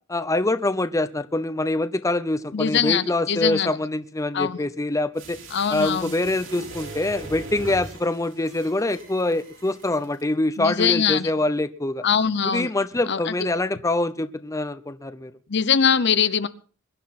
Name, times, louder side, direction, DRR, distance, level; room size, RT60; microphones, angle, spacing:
voice 1, 0.1-5.4 5.7-12.0 12.4-15.3, left 2 dB, 15° left, 12 dB, 0.7 m, -25 dB
voice 2, 2.5-3.7 4.3-4.6 5.5-6.1 10.6-11.3 12.0-12.7 13.1-13.3 15.5-16.5, left 7 dB, 60° left, 14 dB, 0.7 m, -22 dB
sound 1, 5.2-10.2 10.5-10.6, right 2 dB, 70° right, 5.2 m, -40 dB
22.5 x 11.0 x 4.2 m, 0.40 s
head